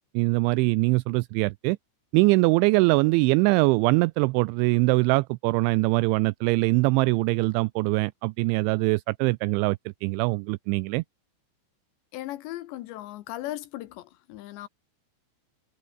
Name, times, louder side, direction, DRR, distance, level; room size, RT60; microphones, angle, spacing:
voice 1, 0.2-1.8 2.1-11.0, right 24 dB, 85° right, 2.7 m, -22 dB
voice 2, 12.1-14.7, left 15 dB, 75° left, 2.9 m, -37 dB
omnidirectional pair, 5.8 m